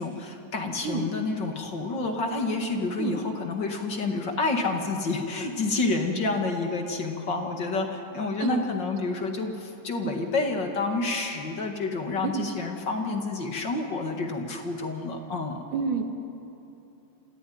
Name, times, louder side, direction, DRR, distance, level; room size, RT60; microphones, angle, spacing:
voice 1, 0.0-15.6, left 3 dB, 40° left, 3 dB, 2.1 m, -29 dB
voice 2, 15.7-16.1, right 6 dB, 75° right, 5 dB, 3.1 m, -28 dB
27.0 x 15.5 x 9.4 m, 2.9 s
omnidirectional pair, 3.6 m